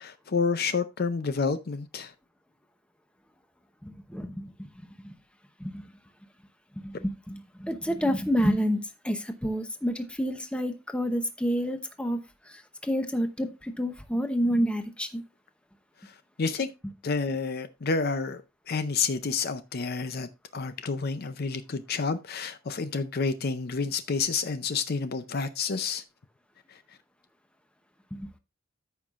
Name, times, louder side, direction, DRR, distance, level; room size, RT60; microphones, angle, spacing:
voice 1, 0.0-2.1 16.4-16.7 17.0-18.4 18.7-26.0, left 4 dB, 45° left, 0.5 m, -29 dB
voice 2, 3.8-4.5 5.0-5.1 5.6-5.9 6.8-12.2 12.5-15.2 28.1-28.3, equal, 5° left, 0.8 m, -29 dB
14.0 x 5.6 x 2.4 m
head